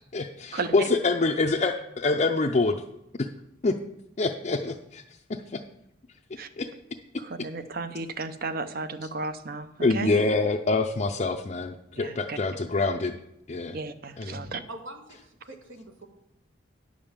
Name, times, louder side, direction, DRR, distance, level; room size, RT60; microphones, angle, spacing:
voice 1, 0.1-2.8 3.2-3.3 3.6-3.8 4.2-5.0 5.3-5.6 6.6-6.7 7.1-7.2 9.8-13.2 13.5-13.8 14.2-14.4, left 3 dB, 35° left, 1 dB, 0.5 m, -26 dB
voice 2, 7.2-10.1 11.9-12.4 13.7-14.6, right 3 dB, 50° right, 11 dB, 0.7 m, -34 dB
voice 3, 14.7-16.1, right 1 dB, 80° right, 3 dB, 1.6 m, -44 dB
10.0 x 5.2 x 7.2 m, 0.82 s
head